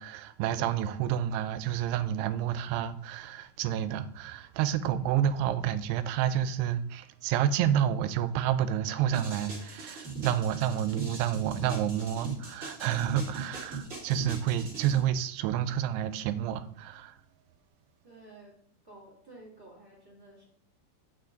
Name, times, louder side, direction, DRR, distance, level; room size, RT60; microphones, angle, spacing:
voice 1, 0.0-17.2, right 10 dB, 85° right, 2.7 m, -29 dB
sound 1, 9.1-15.0, right 4 dB, 30° right, 1.7 m, -39 dB
voice 2, 18.0-18.6 18.8-20.5, right 2 dB, 10° right, 1.3 m, -52 dB
8.4 x 6.3 x 3.9 m
omnidirectional pair, 4.7 m